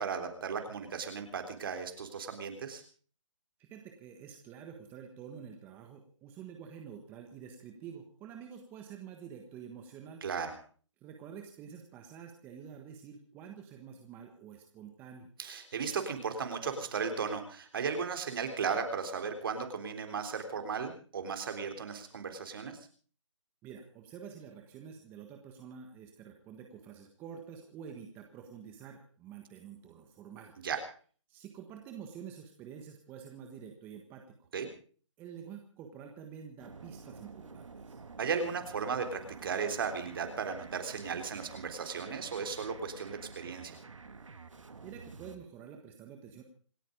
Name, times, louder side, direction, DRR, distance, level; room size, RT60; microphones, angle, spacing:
voice 1, 0.0-2.8 10.2-10.6 15.4-22.9 30.6-30.8 34.5-34.7 38.2-43.8, right 6 dB, 45° right, 6 dB, 3.6 m, -36 dB
voice 2, 3.6-10.2 11.0-15.3 23.6-30.5 31.3-34.3 35.2-38.0 44.8-46.4, right 7 dB, 10° right, 4 dB, 1.3 m, -48 dB
sound 1, 36.6-45.4, right 4 dB, 80° right, 2.4 m, -50 dB
27.5 x 9.4 x 5.2 m, 0.44 s
hypercardioid pair, 160°, 16 cm